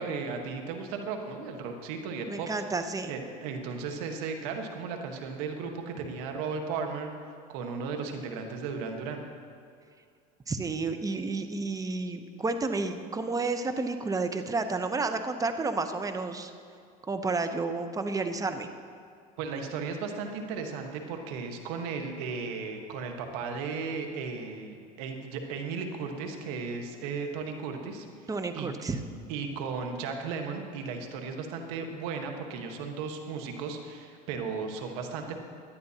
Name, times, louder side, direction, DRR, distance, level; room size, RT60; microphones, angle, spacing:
voice 1, 0.0-2.5 3.1-7.1 7.5-9.2 19.4-28.3 28.5-28.7 29.3-35.4, right 5 dB, 75° right, 4 dB, 1.4 m, -35 dB
voice 2, 2.3-3.1 10.5-16.5 17.1-18.7 28.3-29.0, right 3 dB, 15° right, 8 dB, 0.9 m, -31 dB
17.0 x 11.0 x 2.9 m, 2.3 s
supercardioid pair, 100°, 19 cm